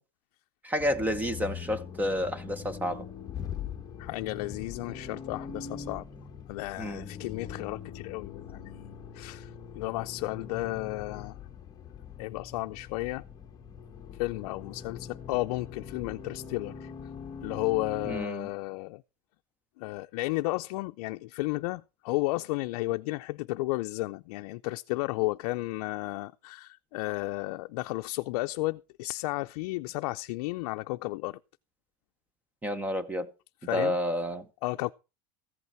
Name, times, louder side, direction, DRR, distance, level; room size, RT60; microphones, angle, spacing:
voice 1, 0.6-3.1 6.8-7.1 18.1-18.5 32.6-33.3 33.7-34.5, equal, 10° right, 0.7 m, -30 dB
Accelerating revving vroom, 0.8-18.3, left 6 dB, 20° left, 1.1 m, -42 dB
voice 2, 4.0-6.0 6.5-11.4 12.2-13.2 14.2-16.9 17.4-19.0 19.8-31.4 33.7-34.0 34.6-34.9, left 21 dB, 65° left, 0.5 m, -33 dB
14.5 x 8.4 x 4.4 m
supercardioid pair, 160°, 20 cm